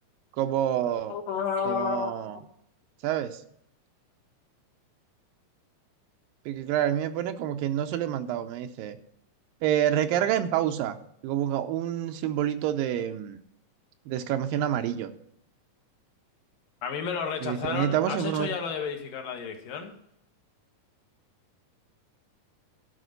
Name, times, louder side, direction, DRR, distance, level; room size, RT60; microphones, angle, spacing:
voice 1, 0.4-1.2 1.7-2.4 3.0-3.4 6.5-9.0 9.6-11.0 11.2-13.4 14.1-15.1 17.4-18.5, right 11 dB, 85° right, 9 dB, 2.4 m, -27 dB
voice 2, 1.1-2.4 16.8-19.9, left 7 dB, 75° left, 4 dB, 2.9 m, -32 dB
11.5 x 5.1 x 8.0 m, 0.74 s
omnidirectional pair, 4.1 m